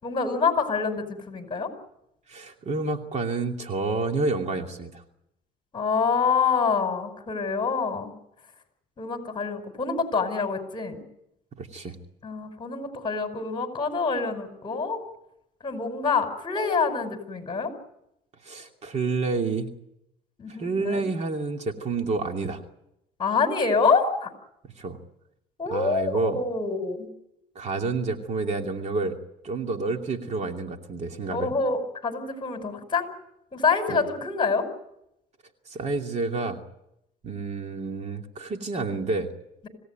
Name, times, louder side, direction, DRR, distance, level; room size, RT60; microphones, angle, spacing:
voice 1, 0.0-1.7 5.7-8.1 9.0-11.0 12.2-15.0 15.6-17.7 20.4-21.0 23.2-24.3 25.6-27.1 31.3-33.1 33.5-34.7, left 4 dB, 30° left, 6 dB, 5.3 m, -26 dB
voice 2, 2.3-5.0 11.5-12.0 18.4-19.7 20.5-22.6 24.8-25.0 25.7-26.4 27.5-29.2 29.4-31.5 33.9-34.0 35.7-36.6 37.2-39.3, right 3 dB, 40° right, 4 dB, 2.7 m, -29 dB
26.5 x 17.5 x 9.3 m, 0.84 s
cardioid pair, 110°, 17 cm